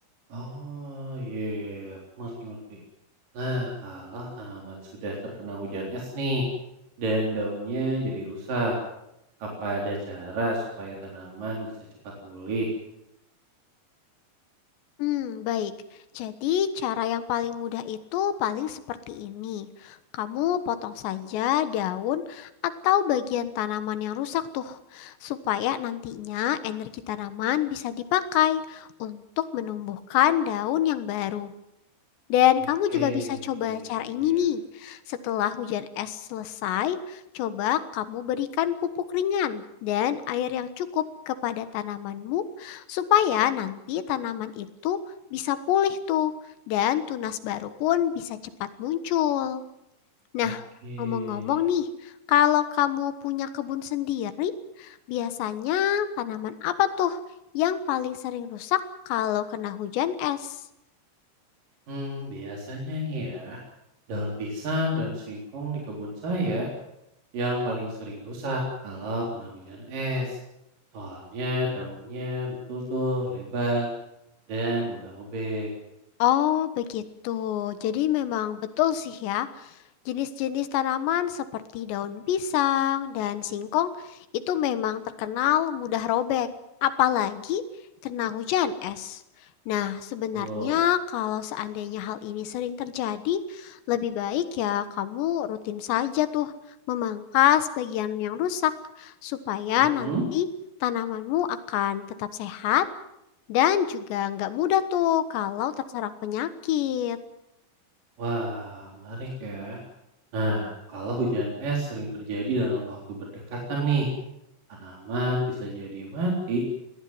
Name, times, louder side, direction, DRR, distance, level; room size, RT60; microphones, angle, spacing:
voice 1, 0.3-2.8 3.3-6.4 7.0-8.8 9.4-11.7 12.2-12.7 32.9-33.9 34.2-34.4 50.4-50.5 50.8-51.6 61.9-63.6 64.1-66.7 67.3-70.4 70.9-73.9 74.5-75.7 90.3-90.8 99.8-100.2 108.2-109.8 110.3-114.1 114.7-116.6, right 1 dB, 50° right, -2 dB, 5.2 m, -30 dB
voice 2, 15.0-15.7 16.2-31.5 32.3-38.8 39.1-45.0 45.3-46.3 46.7-49.6 50.3-50.6 51.0-54.5 54.8-57.2 57.6-60.6 76.2-79.8 80.1-86.5 86.8-87.6 88.0-89.2 89.7-96.5 96.9-100.5 100.8-102.9 103.5-107.2, left 11 dB, 80° left, 12 dB, 3.5 m, -27 dB
22.0 x 16.5 x 9.5 m, 0.86 s
omnidirectional pair, 5.0 m